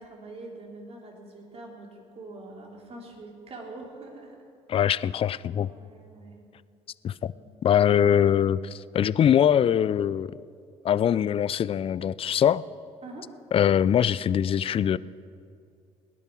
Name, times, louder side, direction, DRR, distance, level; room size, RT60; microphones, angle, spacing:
voice 1, 0.0-4.4 5.6-6.4 7.2-7.8 13.0-13.3, right 2 dB, 45° right, -1 dB, 3.4 m, -44 dB
voice 2, 4.7-5.7 7.0-7.3 7.6-10.3 10.8-12.6 13.5-15.0, left 9 dB, 40° left, 19 dB, 0.4 m, -22 dB
18.5 x 11.0 x 4.6 m, 2.4 s
supercardioid pair, 65°, 14 cm